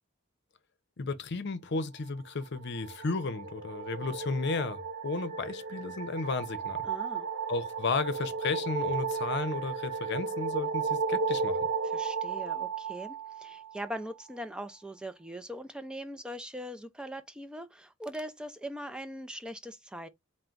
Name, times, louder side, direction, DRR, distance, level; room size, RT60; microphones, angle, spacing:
voice 1, 1.0-6.9 7.5-11.7, left 3 dB, 55° left, 0.6 m, -33 dB
sound 1, 2.5-13.9, right 5 dB, 60° right, 0.6 m, -34 dB
voice 2, 6.8-7.3 11.8-20.1, equal, 5° right, 0.4 m, -41 dB
3.8 x 2.2 x 4.4 m
head